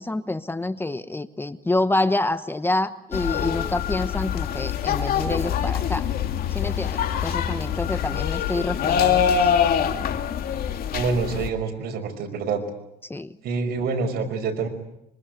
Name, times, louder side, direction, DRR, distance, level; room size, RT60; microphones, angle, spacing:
voice 1, 0.0-6.0 6.5-9.5 13.0-13.4, left 2 dB, 15° left, 12 dB, 1.0 m, -27 dB
sound 1, 3.1-11.5, left 8 dB, 60° left, 2.5 m, -24 dB
voice 2, 10.9-12.6 13.4-14.7, right 4 dB, 70° right, 5 dB, 5.7 m, -26 dB
25.5 x 24.5 x 8.1 m, 0.82 s
cardioid pair, 110°, 17 cm